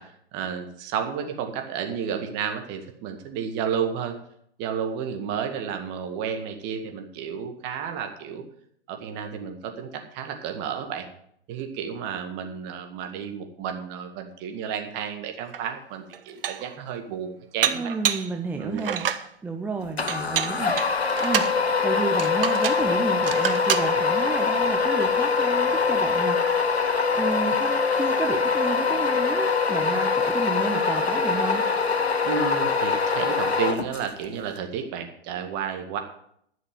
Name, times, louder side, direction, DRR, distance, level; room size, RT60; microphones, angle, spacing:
voice 1, 0.0-4.2 4.6-8.4 8.9-11.1 11.5-17.9 18.5-18.9 32.2-36.0, right 7 dB, 35° right, 5 dB, 2.0 m, -32 dB
Dishes pots and pans, 15.5-15.6 16.1-16.7 17.6-18.3 18.8-19.3 20.1-21.6 22.2-22.9 23.2-23.9, right 9 dB, 60° right, 1.0 m, -27 dB
voice 2, 17.7-19.1 19.4-20.7 21.2-26.6 27.2-31.6, right 3 dB, 5° right, 4 dB, 0.6 m, -31 dB
sound 1, 20.0-34.2, left 5 dB, 85° left, 1.1 m, -23 dB
11.0 x 6.6 x 7.7 m, 0.70 s
figure-of-eight pair, 110°, 31 cm